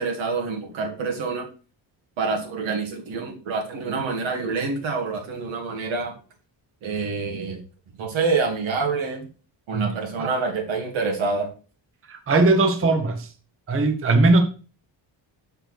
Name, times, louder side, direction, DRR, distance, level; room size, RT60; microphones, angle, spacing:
voice 1, 0.0-1.5 2.2-6.1 6.8-7.6 8.0-9.3 9.7-11.5, right 4 dB, 85° right, 2.0 m, -26 dB
voice 2, 12.1-13.3 13.7-14.4, right 2 dB, 30° right, 0.8 m, -19 dB
6.5 x 6.1 x 3.2 m
cardioid pair, 135°, 45 cm